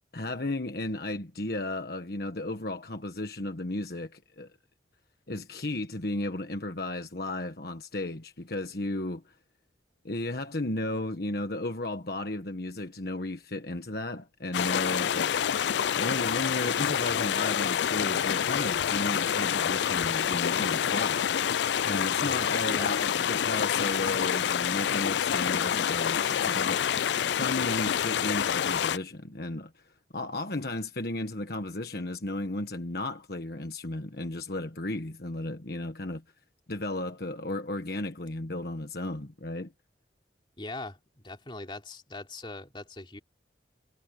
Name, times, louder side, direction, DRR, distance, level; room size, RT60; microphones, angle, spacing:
voice 1, 0.1-4.5 5.3-9.3 10.0-15.3 15.9-21.3 21.8-26.9 27.2-29.8 30.1-36.2 36.7-39.7, left 2 dB, 55° left, 1.4 m, -34 dB
sound 1, 14.5-29.0, left 8 dB, 70° left, 0.4 m, -27 dB
voice 2, 22.2-22.9 40.6-43.2, left 2 dB, 25° left, 3.5 m, -41 dB
head